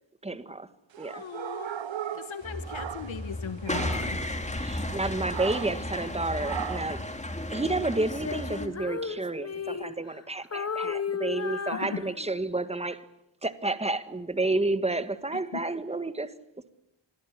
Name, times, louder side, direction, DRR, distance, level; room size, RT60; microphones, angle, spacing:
voice 1, 0.2-0.7 1.0-1.2 4.5-7.1 7.5-13.1 13.4-16.3, right 2 dB, 15° right, 1.5 m, -30 dB
sound 1, 0.9-3.4 3.6-4.2 5.3-5.9 6.4-7.0, right 10 dB, 70° right, 1.1 m, -37 dB
voice 2, 1.0-1.8 2.1-4.2 11.7-12.0 15.3-15.6, left 7 dB, 80° left, 1.5 m, -39 dB
sound 2, 2.4-8.7, left 1 dB, 15° left, 2.6 m, -34 dB
Female singing, 8.0-10.2 10.5-12.6, left 6 dB, 35° left, 1.0 m, -34 dB
27.5 x 21.0 x 10.0 m
wide cardioid pair, 125°, 46 cm